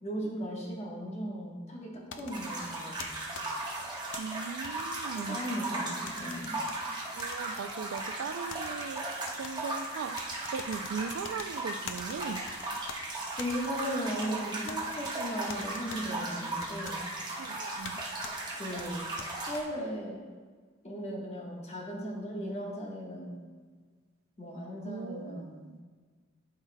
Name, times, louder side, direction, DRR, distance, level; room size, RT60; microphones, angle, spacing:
voice 1, 0.0-3.3 5.1-6.6 13.4-17.0 18.6-19.0 19.5-20.2 20.8-23.5 24.4-25.7, equal, 35° left, -2 dB, 1.2 m, -37 dB
sound 1, 2.1-4.2 4.6-5.8 6.1-6.8 7.2-8.1 8.5-9.5 10.2-11.5 11.9-13.0 13.4-14.3 14.7-15.1 15.5-16.0 16.6-17.0 17.8-18.0 18.2-18.3 18.8-19.6, left 6 dB, 65° left, 0.5 m, -45 dB
sound 2, 2.3-19.6, right 2 dB, 20° right, 1.0 m, -37 dB
voice 2, 4.2-5.4 7.2-9.1 9.4-10.2 10.5-12.4 17.4-18.0 24.9-25.8, right 6 dB, 85° right, 12 dB, 0.3 m, -39 dB
11.5 x 4.7 x 2.2 m, 1.5 s
head